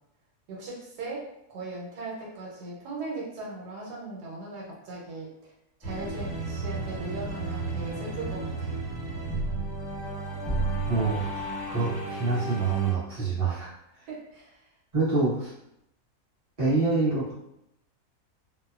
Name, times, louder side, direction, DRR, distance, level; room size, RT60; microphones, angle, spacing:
voice 1, 0.5-5.5 5.8-8.7 14.1-14.7, right 2 dB, 85° right, -3 dB, 1.3 m, -38 dB
sound 1, 5.8-12.9, right 3 dB, 5° left, 0.8 m, -32 dB
voice 2, 10.9-13.7 14.9-15.5 16.6-17.3, right 3 dB, 25° right, -10 dB, 1.0 m, -26 dB
2.9 x 2.0 x 2.3 m, 0.82 s
omnidirectional pair, 1.7 m